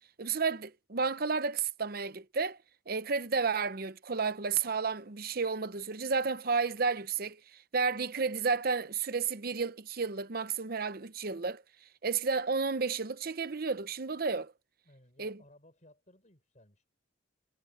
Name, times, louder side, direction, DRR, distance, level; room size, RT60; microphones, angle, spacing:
voice 1, 0.2-2.6 2.9-7.4 7.7-11.6 12.0-14.5 15.2-15.4, right 5 dB, 50° right, 0.8 m, -32 dB
voice 2, 14.8-16.9, left 1 dB, 40° left, 5.9 m, -60 dB
head